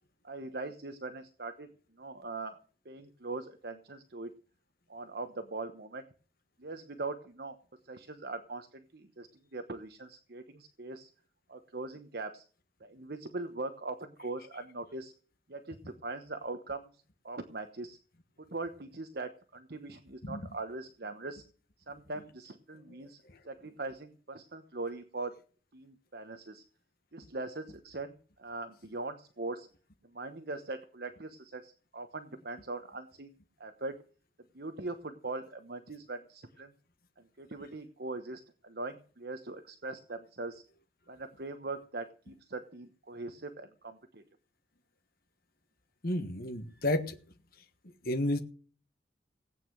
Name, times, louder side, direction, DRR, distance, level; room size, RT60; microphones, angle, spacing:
voice 1, 0.2-4.3 4.9-6.0 6.6-7.6 7.8-11.1 11.5-12.4 12.8-15.1 15.5-18.0 18.4-21.4 21.9-25.4 25.7-26.6 27.1-29.7 30.0-33.3 33.6-34.0 34.5-36.7 37.2-40.6 41.1-44.2, right 3 dB, 60° right, 8 dB, 1.1 m, -41 dB
voice 2, 46.0-47.2 48.0-48.4, left 1 dB, 55° left, 5 dB, 1.5 m, -31 dB
17.5 x 9.1 x 6.4 m, 0.41 s
head